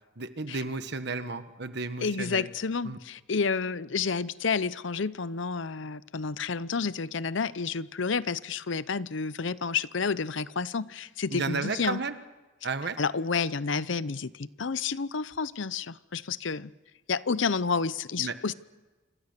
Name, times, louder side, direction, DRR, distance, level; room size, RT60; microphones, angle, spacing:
voice 1, 0.2-2.5 2.8-3.0 11.3-12.1 12.6-13.0 18.2-18.4, right 4 dB, 60° right, 10 dB, 1.3 m, -33 dB
voice 2, 2.0-12.0 13.0-16.7 17.1-18.5, left 5 dB, 70° left, 17 dB, 0.7 m, -30 dB
27.5 x 25.0 x 6.7 m, 1.2 s
head